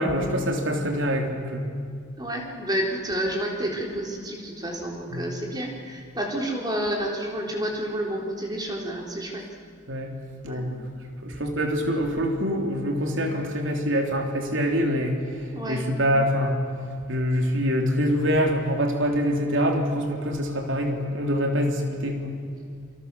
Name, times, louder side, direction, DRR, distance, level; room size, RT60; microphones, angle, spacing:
voice 1, 0.0-1.7 5.1-5.3 9.9-10.1 10.4-10.8 11.2-15.2 15.7-16.6 17.1-22.3, equal, 70° right, 2 dB, 3.4 m, -25 dB
voice 2, 2.2-9.4 10.5-10.7 15.5-15.8, right 1 dB, 20° right, 0 dB, 4.0 m, -30 dB
27.5 x 25.5 x 7.0 m, 2.2 s
head